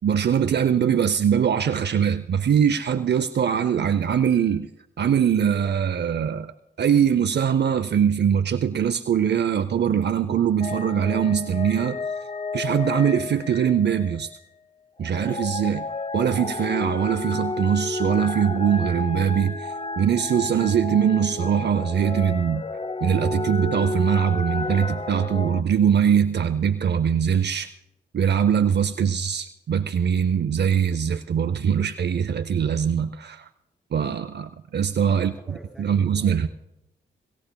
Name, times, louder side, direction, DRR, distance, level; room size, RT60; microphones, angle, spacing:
voice 1, 0.0-4.7 5.0-6.5 6.8-12.0 12.5-14.3 15.0-15.9 16.1-22.6 23.0-27.7 28.1-33.5 33.9-35.3 35.8-36.5, right 8 dB, 55° right, 10 dB, 0.6 m, -22 dB
sound 1, 10.6-14.4 15.0-25.6, left 3 dB, 30° left, 0.8 m, -32 dB
voice 2, 35.1-36.5, right 1 dB, ahead, 3 dB, 7.0 m, -45 dB
25.0 x 15.0 x 2.2 m, 0.87 s
supercardioid pair, 45°, 21 cm